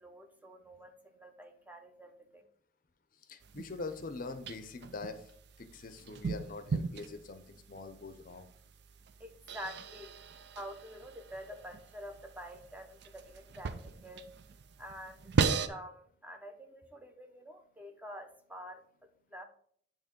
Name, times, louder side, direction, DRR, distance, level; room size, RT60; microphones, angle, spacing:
voice 1, 0.0-2.4 9.0-19.4, equal, 10° right, 6 dB, 0.7 m, -48 dB
voice 2, 3.3-5.3 5.6-8.5, left 3 dB, 50° left, 9 dB, 0.6 m, -43 dB
sound 1, 3.4-15.7, right 5 dB, 65° right, 0.5 m, -38 dB
9.0 x 3.0 x 5.1 m, 0.62 s
head